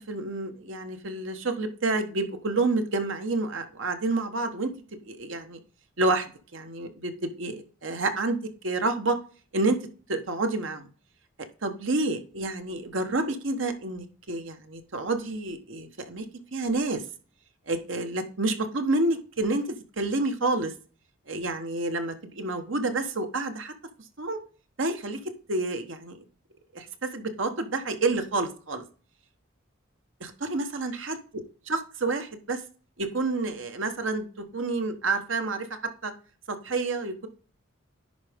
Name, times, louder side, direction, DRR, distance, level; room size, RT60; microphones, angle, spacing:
voice 1, 0.1-4.7 5.0-5.6 6.0-8.4 8.6-9.2 9.5-9.8 10.1-10.9 11.6-16.3 16.5-17.0 17.7-20.7 21.3-23.7 24.2-24.4 24.8-25.2 25.5-26.2 26.7-28.8 30.2-31.2 31.7-32.6 33.0-35.7 36.0-36.1 36.5-37.3, right 2 dB, 65° right, 7 dB, 1.2 m, -29 dB
10.5 x 4.9 x 3.6 m, 0.39 s
head